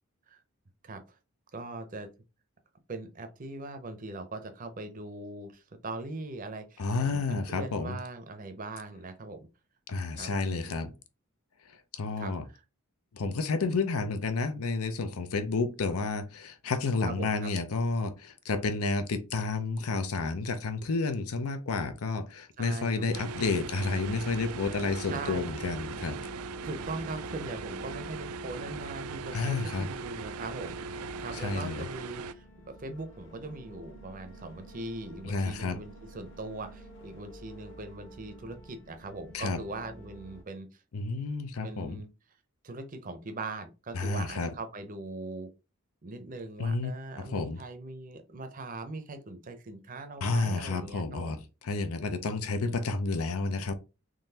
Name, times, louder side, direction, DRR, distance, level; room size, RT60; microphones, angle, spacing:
voice 1, 1.5-2.1 2.9-9.5 10.2-10.7 12.2-12.6 17.1-17.5 22.6-23.3 25.1-25.4 26.6-40.7 41.6-42.1 42.6-45.5 46.0-51.4, right 2 dB, 40° right, 0.6 m, -41 dB
voice 2, 6.8-8.0 9.9-10.9 11.7-12.4 13.1-26.2 29.3-29.9 31.3-31.9 35.2-35.8 39.3-39.6 40.9-42.0 43.9-44.5 46.6-46.9 47.2-47.6 50.2-53.7, left 3 dB, 85° left, 0.6 m, -31 dB
sound 1, 23.1-32.3, right 4 dB, 80° right, 0.4 m, -39 dB
sound 2, 24.0-40.4, right 1 dB, 55° left, 1.5 m, -50 dB
3.8 x 3.1 x 2.8 m
head